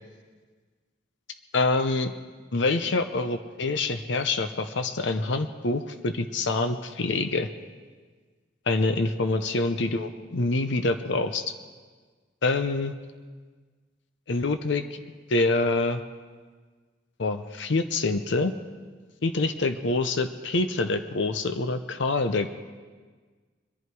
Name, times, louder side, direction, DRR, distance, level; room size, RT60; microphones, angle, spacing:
voice 1, 1.5-2.1 2.5-7.5 8.7-11.4 12.4-12.9 14.3-15.0 15.3-16.0 17.2-18.5 19.2-22.5, left 3 dB, 65° left, 9 dB, 0.7 m, -26 dB
23.5 x 11.0 x 4.7 m, 1.5 s
head